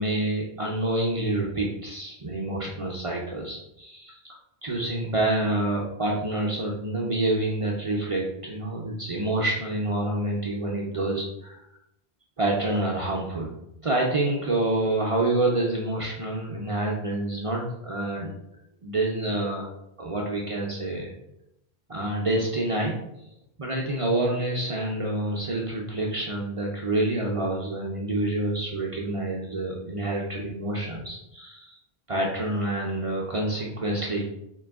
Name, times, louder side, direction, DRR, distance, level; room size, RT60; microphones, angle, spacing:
voice 1, 0.0-4.3 4.6-11.7 12.4-13.5 13.8-18.3 18.8-19.7 20.0-21.1 21.9-23.0 23.6-31.8 32.1-34.3, right 2 dB, 45° right, -2 dB, 0.5 m, -27 dB
3.8 x 2.9 x 3.4 m, 0.82 s
omnidirectional pair, 1.0 m